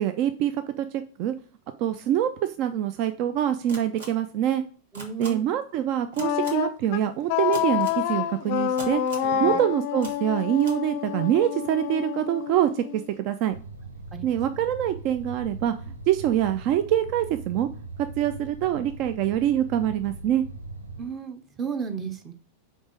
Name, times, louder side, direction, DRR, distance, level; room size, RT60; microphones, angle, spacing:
voice 1, 0.0-1.3 1.8-4.6 5.2-9.0 9.4-13.5 14.2-15.7 16.1-17.7 18.0-20.4, right 11 dB, 45° right, 10 dB, 0.4 m, -25 dB
sound 1, 3.7-4.1 4.9-5.3 6.1-6.5 7.5-8.0 8.8-9.3 10.0-10.1 10.6-10.7, right 2 dB, 60° right, 1.4 m, -39 dB
voice 2, 4.9-5.4 9.2-9.6 14.1-14.4 21.0-22.3, right 6 dB, 25° right, 8 dB, 0.9 m, -34 dB
Wind instrument woodwind instrument, 6.2-13.1, left 10 dB, 45° left, 0.5 m, -28 dB
sound 2, 13.5-21.1, right 3 dB, 80° right, 0.7 m, -40 dB
5.2 x 4.2 x 5.0 m, 0.41 s
figure-of-eight pair, 90°, 0 cm